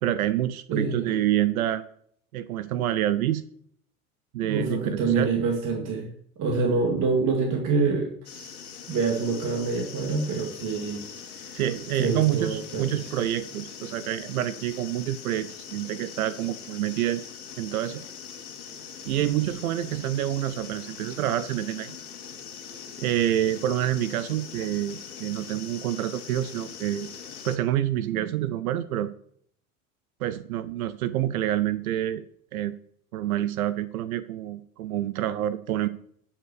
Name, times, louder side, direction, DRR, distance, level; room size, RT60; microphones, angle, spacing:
voice 1, 0.0-1.8 2.3-3.4 4.3-5.3 11.5-17.2 17.6-18.0 19.0-22.0 23.0-27.1 27.4-29.1 30.2-32.2 32.5-32.8 33.1-35.9, right 12 dB, 70° right, 16 dB, 0.7 m, -27 dB
voice 2, 0.7-1.2 4.4-6.1 6.4-8.5 8.9-11.0 11.3-11.6 11.9-13.1, right 4 dB, 45° right, 2 dB, 2.3 m, -26 dB
sound 1, 8.2-27.6, left 7 dB, 80° left, 2.3 m, -42 dB
12.0 x 5.8 x 6.8 m, 0.64 s
hypercardioid pair, 80°, 44 cm